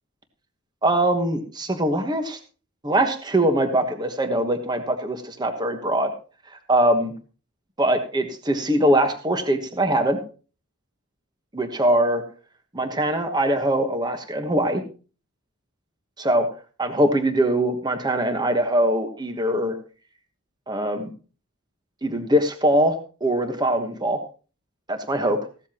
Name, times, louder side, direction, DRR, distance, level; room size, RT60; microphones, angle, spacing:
voice 1, 0.8-2.4 2.8-6.1 6.7-7.1 7.8-10.2 11.5-12.2 12.7-14.8 16.2-16.5 16.8-19.8 20.7-21.1 22.0-22.9 23.2-24.2 24.9-25.4, right 1 dB, 20° right, 6 dB, 1.2 m, -22 dB
15.5 x 12.5 x 3.0 m, 0.37 s
head